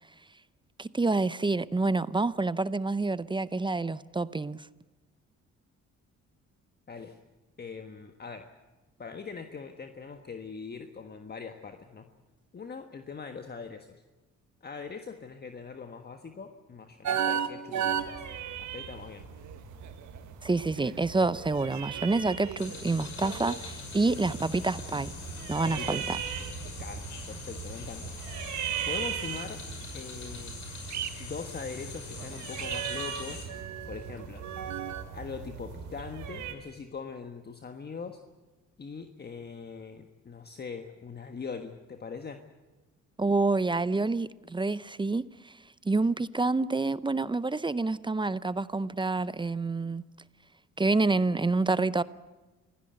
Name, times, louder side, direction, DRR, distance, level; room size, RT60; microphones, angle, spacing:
voice 1, 0.8-4.7 20.4-25.1 25.5-26.2 43.2-45.5 45.8-50.0 50.8-52.0, right 3 dB, 15° right, 0.6 m, -28 dB
voice 2, 6.9-7.2 7.6-8.5 9.0-12.1 12.5-14.0 14.6-18.2 18.6-19.2 25.6-26.0 26.6-28.1 28.4-29.6 29.9-30.6 31.2-33.4 33.9-34.4 35.1-38.2 38.8-42.4, left 5 dB, 35° left, 1.4 m, -41 dB
sound 1, 17.0-18.1 19.4-20.3 20.7-23.6 23.9-25.3 25.6-25.9 26.4-26.9 27.5-27.6 28.0-28.3 29.4-29.5 30.9-31.1 31.9-35.0, right 9 dB, 70° right, 1.5 m, -36 dB
sound 2, 17.9-36.5, right 7 dB, 85° right, 3.6 m, -40 dB
sound 3, 22.6-33.5, left 4 dB, 65° left, 6.2 m, -43 dB
26.0 x 16.5 x 7.9 m
cardioid pair, 90°, 30 cm